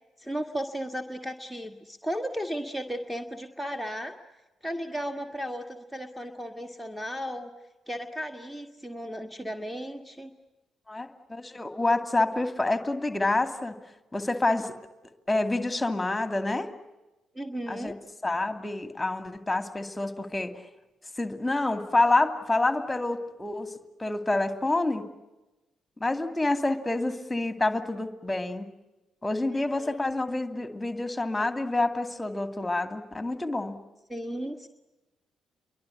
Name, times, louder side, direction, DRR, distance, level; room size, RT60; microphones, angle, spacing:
voice 1, 0.2-4.1 4.6-7.5 7.9-10.3 17.3-18.0 29.5-30.0 34.1-34.7, equal, 5° right, 7 dB, 1.9 m, -35 dB
voice 2, 10.9-13.8 14.1-14.7 15.3-16.7 17.7-18.0 18.2-20.5 21.2-25.1 26.0-28.7 29.2-33.8, left 2 dB, 15° left, 8 dB, 2.5 m, -27 dB
29.0 x 23.5 x 8.2 m, 1.0 s
figure-of-eight pair, 45°, 0 cm